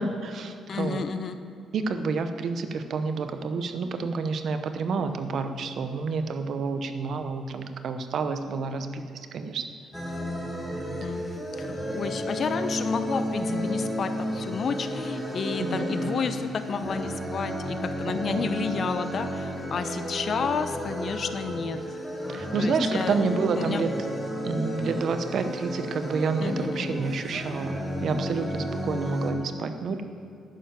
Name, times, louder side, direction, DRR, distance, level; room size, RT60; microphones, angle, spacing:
voice 1, 0.0-1.0 1.7-9.7 10.7-10.9 13.5-13.7 15.6-16.1 18.3-18.5 22.3-24.1 24.4-30.0, right 4 dB, 60° right, 9 dB, 0.9 m, -29 dB
voice 2, 0.7-1.4 11.0-21.8 22.6-23.2 23.6-23.8 26.4-26.9, left 5 dB, 50° left, 9 dB, 0.8 m, -31 dB
sound 1, 9.9-29.3, equal, 5° left, 2.2 m, -32 dB
11.0 x 6.9 x 9.0 m, 2.7 s
cardioid pair, 90°, 0 cm